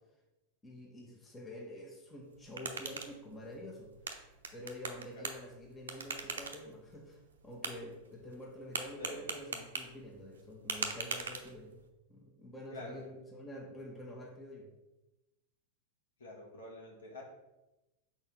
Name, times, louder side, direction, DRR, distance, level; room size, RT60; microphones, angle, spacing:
voice 1, 0.6-3.9 4.5-11.8 12.1-14.7, left 1 dB, 15° left, -1 dB, 1.3 m, -47 dB
sound 1, 2.2-11.9, right 5 dB, 65° right, 0.7 m, -43 dB
voice 2, 16.2-17.2, left 1 dB, 65° left, -2 dB, 1.9 m, -47 dB
4.5 x 4.4 x 5.7 m, 1.0 s
figure-of-eight pair, 90°, 0 cm